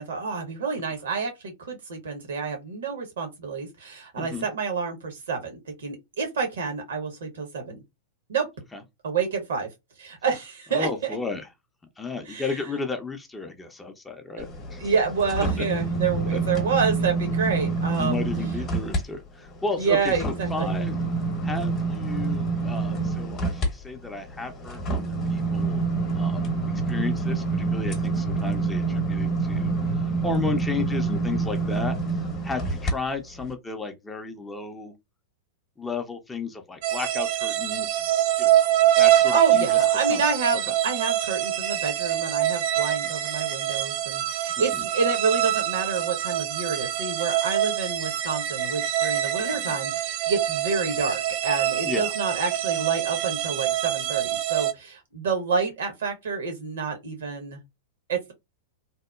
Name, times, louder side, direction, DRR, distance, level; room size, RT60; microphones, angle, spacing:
voice 1, 0.0-7.8 8.3-8.5 9.0-9.7 10.0-11.2 12.3-12.5 14.8-18.3 19.8-20.8 39.1-57.6 58.1-58.3, right 5 dB, 65° right, 0.8 m, -28 dB
voice 2, 10.7-11.5 12.0-14.9 15.4-15.6 16.3-16.4 18.0-20.9 21.4-25.8 26.2-26.5 26.9-27.4 27.7-32.0 32.4-34.9 35.8-38.0 38.4-39.7 40.1-40.3 40.7-40.8 44.7-44.8 49.7-49.8 51.8-52.1, left 3 dB, 10° left, 0.5 m, -33 dB
sound 1, 14.4-19.0 19.4-32.9 33.4-33.5, right 3 dB, 30° left, 0.9 m, -27 dB
sound 2, 36.8-54.7, right 12 dB, 50° right, 0.4 m, -25 dB
2.8 x 2.1 x 2.2 m
figure-of-eight pair, 95°, 0 cm